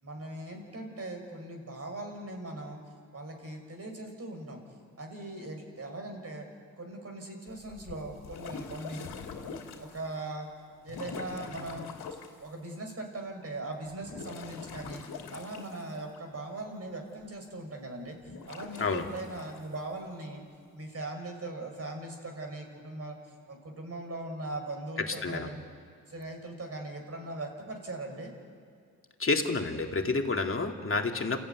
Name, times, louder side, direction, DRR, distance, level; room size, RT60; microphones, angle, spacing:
voice 1, 0.0-2.8 3.1-4.6 5.0-6.5 6.8-9.1 9.8-10.5 10.8-11.9 12.4-15.0 15.3-18.2 18.5-20.4 20.7-23.2 23.5-25.6 26.1-28.3, right 2 dB, 40° right, 3 dB, 5.9 m, -40 dB
sound 1, 7.5-10.0 10.8-12.4 13.9-16.2 18.2-19.6, left 5 dB, 75° left, 2.7 m, -43 dB
voice 2, 29.2-31.4, left 3 dB, 35° left, 3 dB, 2.6 m, -29 dB
28.5 x 14.5 x 9.6 m, 2.3 s
cardioid pair, 70°, 38 cm